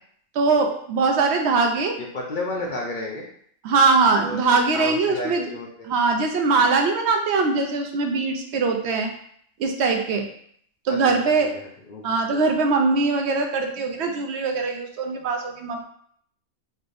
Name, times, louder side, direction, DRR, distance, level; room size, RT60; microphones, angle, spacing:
voice 1, 0.3-2.0 3.6-5.5 5.8-9.1 9.6-10.3 10.8-11.5 12.0-15.8, right 4 dB, 65° right, 3 dB, 0.7 m, -21 dB
voice 2, 2.0-3.2 4.2-4.4 4.7-5.7 10.9-11.2 11.5-12.5, left 2 dB, 60° left, -2 dB, 0.5 m, -32 dB
4.2 x 3.3 x 2.5 m, 0.64 s
omnidirectional pair, 1.5 m